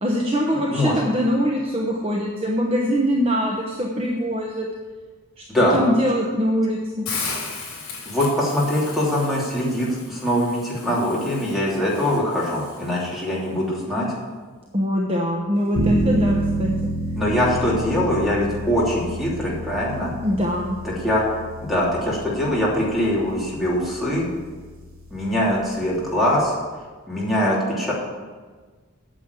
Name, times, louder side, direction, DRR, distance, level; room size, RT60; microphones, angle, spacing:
voice 1, 0.0-4.7 5.7-7.1 14.7-16.7 20.2-20.8, equal, 25° right, -1 dB, 1.0 m, -23 dB
voice 2, 0.7-1.0 5.5-5.9 8.0-14.1 17.1-20.1 20.8-21.2 21.6-24.3 25.1-26.5 27.1-27.9, left 1 dB, ahead, -6 dB, 3.0 m, -22 dB
Hiss, 7.1-13.1, left 4 dB, 60° left, 4.2 m, -36 dB
sound 1, 15.7-26.5, right 1 dB, 75° right, 1.8 m, -29 dB
9.0 x 7.3 x 8.3 m, 1.4 s
head